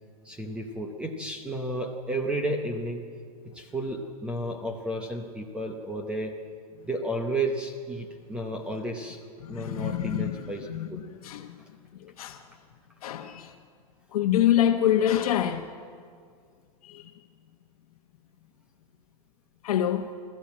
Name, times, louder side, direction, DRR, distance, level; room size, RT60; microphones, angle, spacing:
voice 1, 0.2-3.0 3.5-6.3 6.8-9.2 9.5-11.0, right 1 dB, 5° right, 0.8 m, -32 dB
voice 2, 9.4-10.3 10.7-11.6 12.2-12.4 13.0-13.5 14.1-15.7 16.8-17.0 19.6-20.1, left 11 dB, 70° left, 1.0 m, -26 dB
23.0 x 13.5 x 8.6 m
supercardioid pair, 180°, 19 cm